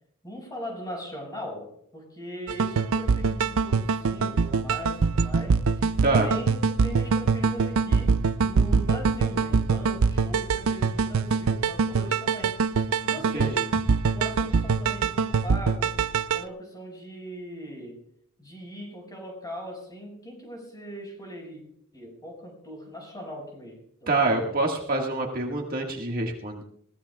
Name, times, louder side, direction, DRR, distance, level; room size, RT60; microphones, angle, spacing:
voice 1, 0.2-12.6 13.0-13.7 14.1-16.0 16.3-18.1 18.4-21.6 21.9-24.7, equal, 20° left, 1 dB, 5.8 m, -40 dB
sound 1, 2.5-16.4, right 5 dB, 90° right, 0.5 m, -24 dB
voice 2, 24.1-26.6, right 2 dB, 45° right, 1 dB, 1.8 m, -26 dB
22.0 x 17.5 x 2.4 m, 0.68 s
head